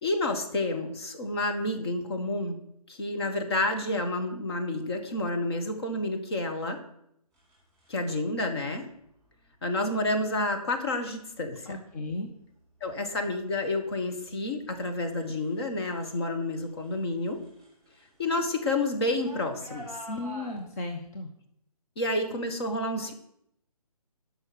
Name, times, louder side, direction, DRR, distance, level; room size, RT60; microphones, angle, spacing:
voice 1, 0.0-2.6 2.9-6.8 7.9-8.9 9.6-11.8 12.8-17.4 18.2-20.0 21.9-23.1, left 2 dB, 40° left, 5 dB, 1.7 m, -29 dB
sound 1, 7.3-8.0 9.2-9.5 10.1-10.5 11.1-11.6 11.9-16.2 16.5-20.6, right 2 dB, 5° left, 4.3 m, -49 dB
voice 2, 11.6-12.3 20.1-21.3, left 2 dB, 25° left, 3 dB, 0.8 m, -35 dB
10.5 x 5.9 x 7.5 m, 0.75 s
figure-of-eight pair, 145°, 20 cm